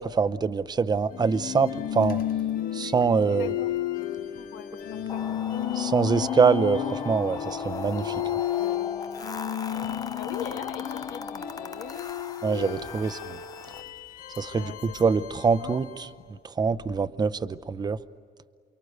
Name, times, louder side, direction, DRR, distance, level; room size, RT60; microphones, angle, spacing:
voice 1, 0.0-2.2 2.7-3.5 5.8-8.2 12.4-13.4 14.4-15.9 16.6-18.0, right 5 dB, 25° right, 12 dB, 0.7 m, -24 dB
sound 1, 1.1-16.2, left 11 dB, 55° left, 1.2 m, -33 dB
voice 2, 3.3-3.7 4.3-5.4 10.1-12.1 14.5-15.0 15.6-15.8, left 9 dB, 85° left, 7 dB, 1.6 m, -41 dB
sound 2, 5.1-13.8, left 4 dB, 20° left, 0.6 m, -38 dB
28.5 x 24.0 x 8.2 m, 2.2 s
cardioid pair, 110°, 17 cm